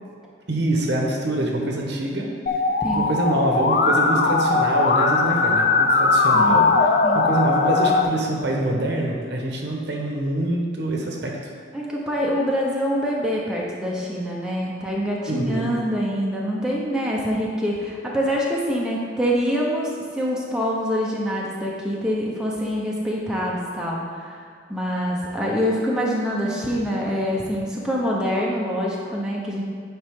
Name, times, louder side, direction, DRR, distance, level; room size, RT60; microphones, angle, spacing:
voice 1, 0.5-2.3 2.9-11.5 15.3-15.7, right 1 dB, 60° right, 0 dB, 1.1 m, -25 dB
Musical instrument, 2.5-8.0, left 3 dB, 50° left, 0.5 m, -19 dB
voice 2, 11.7-29.6, equal, 5° right, -4 dB, 0.8 m, -25 dB
9.2 x 5.1 x 3.7 m, 2.1 s
head